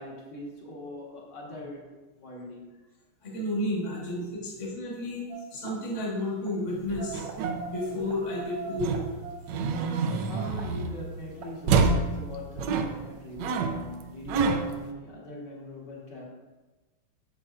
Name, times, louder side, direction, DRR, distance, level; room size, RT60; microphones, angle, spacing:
voice 1, 0.0-1.9 2.1-2.7 10.3-16.2, left 1 dB, 60° left, -5 dB, 2.0 m, -41 dB
voice 2, 3.2-5.2 5.5-7.2 7.7-9.1, left 1 dB, 40° left, -4 dB, 1.5 m, -31 dB
sound 1, 5.3-5.7 6.3-6.6 7.0-9.8 10.3-10.7 11.3-11.5 11.9-12.0, right 5 dB, 50° right, 0.8 m, -40 dB
sound 2, 6.8-8.2 8.8-11.2 11.7-14.9, right 4 dB, 75° right, 1.1 m, -28 dB
8.6 x 6.5 x 2.5 m, 1.2 s
omnidirectional pair, 2.3 m